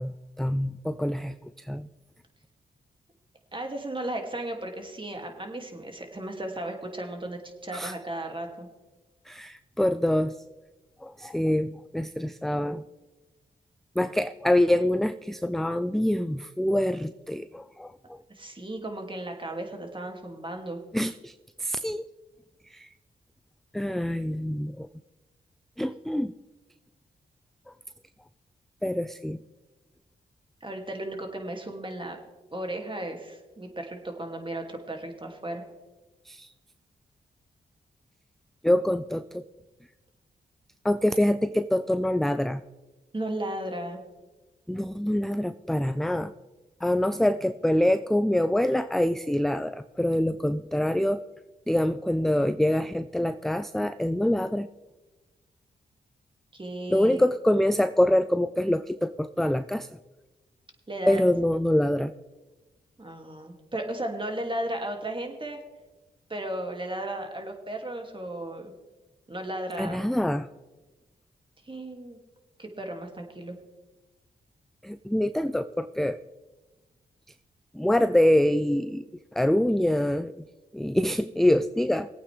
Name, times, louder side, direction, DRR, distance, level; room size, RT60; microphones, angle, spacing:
voice 1, 0.0-1.9 7.7-7.9 9.3-10.3 11.0-12.8 14.0-18.2 20.9-21.3 21.6-22.0 22.7-22.9 23.7-24.9 25.8-26.3 27.7-27.8 28.8-29.4 36.3-36.5 38.6-39.4 40.8-42.6 44.7-46.3 46.8-51.2 51.7-54.7 56.9-59.9 61.1-62.1 69.8-70.5 74.8-76.2 77.7-79.0 79.3-80.3 80.7-82.1, left 1 dB, ahead, 12 dB, 0.4 m, -25 dB
voice 2, 3.5-8.7 18.3-20.8 30.6-32.2 32.5-35.6 43.1-44.0 56.5-57.3 60.9-61.3 63.0-65.6 66.3-68.7 69.3-70.1 71.6-72.2 72.6-73.5, right 1 dB, 25° right, 3 dB, 2.5 m, -35 dB
19.5 x 8.7 x 3.4 m, 1.2 s
supercardioid pair, 40°, 18 cm